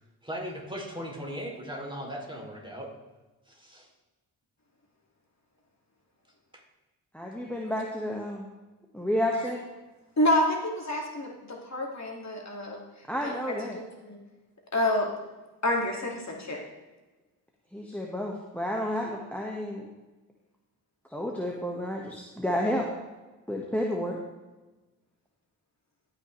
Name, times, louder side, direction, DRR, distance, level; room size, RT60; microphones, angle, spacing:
voice 1, 0.2-2.9 3.5-3.9, equal, 10° right, 0 dB, 3.0 m, -38 dB
voice 2, 7.1-8.5 8.9-9.6 13.1-13.8 17.7-19.9 21.1-22.8 23.5-24.2, equal, 5° left, -1 dB, 1.5 m, -31 dB
voice 3, 10.2-12.8 13.2-14.2 14.7-15.1 15.6-16.6, left 1 dB, 40° left, -1 dB, 2.3 m, -28 dB
17.0 x 6.0 x 3.2 m, 1.2 s
supercardioid pair, 50°, 41 cm